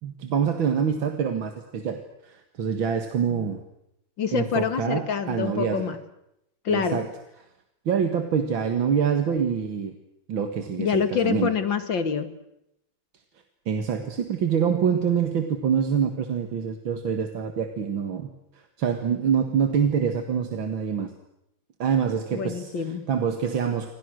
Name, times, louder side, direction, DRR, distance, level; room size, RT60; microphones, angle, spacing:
voice 1, 0.0-3.6 4.3-5.9 6.7-7.1 7.9-9.9 10.3-11.5 13.7-21.1 21.8-22.7 23.1-23.9, right 7 dB, 85° right, 6 dB, 2.6 m, -25 dB
voice 2, 4.2-6.0 6.6-7.0 10.8-12.3 22.3-23.1, left 6 dB, 75° left, 10 dB, 2.7 m, -26 dB
29.5 x 25.5 x 6.4 m, 0.82 s
omnidirectional pair, 2.1 m